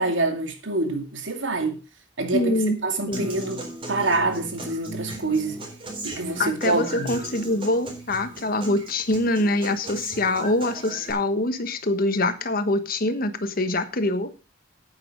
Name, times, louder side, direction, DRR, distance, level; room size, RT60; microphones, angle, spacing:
voice 1, 0.0-1.8 2.2-5.6 6.0-7.1, right 2 dB, 75° right, 2.4 m, -26 dB
voice 2, 2.3-2.8 3.1-3.3 6.4-14.3, left 2 dB, 50° left, 1.3 m, -24 dB
Human voice / Acoustic guitar, 3.1-11.1, right 2 dB, 30° right, 4.2 m, -37 dB
9.9 x 8.7 x 5.3 m
head